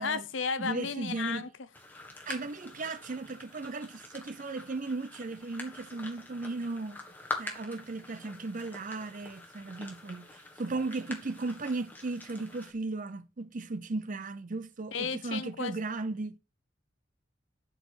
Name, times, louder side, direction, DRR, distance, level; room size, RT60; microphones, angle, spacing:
voice 1, 0.0-1.5 14.9-15.7, left 5 dB, 70° left, 0.8 m, -33 dB
voice 2, 0.6-1.5 2.3-7.0 7.4-10.3 10.6-16.4, right 3 dB, 40° right, 0.6 m, -36 dB
sound 1, 1.7-12.7, left 2 dB, 10° left, 1.6 m, -45 dB
7.8 x 4.9 x 6.0 m
head